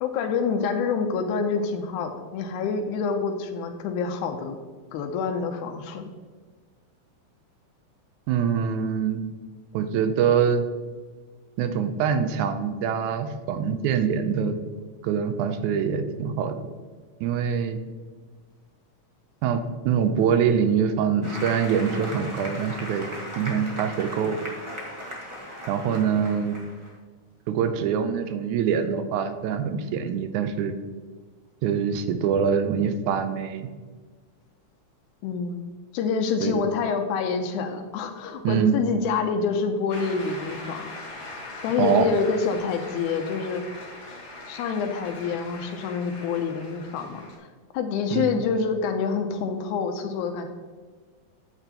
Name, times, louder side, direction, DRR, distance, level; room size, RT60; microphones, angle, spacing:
voice 1, 0.0-4.6 4.9-6.1 35.2-40.9 41.6-43.6 44.5-47.5 47.7-50.5, left 5 dB, 90° left, 5 dB, 2.1 m, -27 dB
voice 2, 8.3-9.2 9.7-10.6 11.6-14.6 15.0-16.6 17.2-17.8 19.4-23.1 23.4-24.4 25.7-26.6 27.5-30.8 31.6-33.7 36.4-36.7 38.4-38.8 41.8-42.1 48.1-48.4, right 7 dB, 85° right, 9 dB, 2.0 m, -24 dB
Applause, 21.2-26.9, equal, 25° right, 0.6 m, -37 dB
Shout / Cheering / Applause, 39.9-47.4, left 2 dB, 70° left, 3.4 m, -41 dB
9.1 x 7.9 x 2.9 m, 1.4 s
omnidirectional pair, 3.5 m